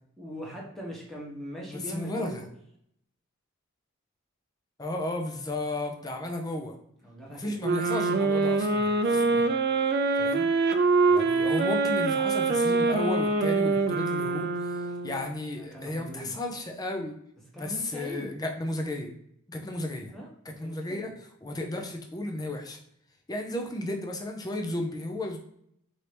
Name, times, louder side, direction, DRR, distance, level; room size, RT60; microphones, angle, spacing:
voice 1, 0.2-2.5 7.0-7.6 9.0-9.4 15.6-16.3 17.5-18.3 20.1-20.3 20.6-21.1, equal, ahead, -3 dB, 1.0 m, -41 dB
voice 2, 1.7-2.4 4.8-6.8 7.3-9.5 10.2-10.5 11.1-17.1 17.5-19.1 19.5-20.1 20.6-21.1 21.4-22.8 23.3-25.4, left 1 dB, 20° left, 2 dB, 0.5 m, -34 dB
sound 1, 7.6-15.3, right 3 dB, 50° right, 0.4 m, -25 dB
4.4 x 2.7 x 3.2 m, 0.71 s
head